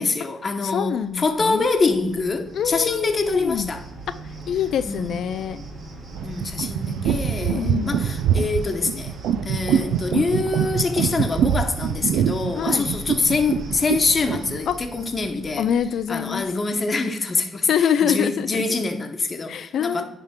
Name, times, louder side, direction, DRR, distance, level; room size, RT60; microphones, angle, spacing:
voice 1, 0.0-3.8 4.9-5.1 6.2-9.1 9.4-15.7 16.1-20.0, left 3 dB, 35° left, 1.0 m, -25 dB
voice 2, 0.6-1.7 2.5-3.7 4.5-5.6 7.4-8.0 12.5-12.9 14.7-14.8 15.6-16.5 17.7-18.6 19.5-20.0, left 8 dB, 70° left, 0.3 m, -25 dB
Cricket, 0.9-16.6, right 1 dB, 60° right, 2.3 m, -39 dB
sound 1, 6.1-14.6, right 9 dB, 85° right, 0.3 m, -24 dB
10.5 x 3.4 x 3.6 m
cardioid pair, 90°, 0 cm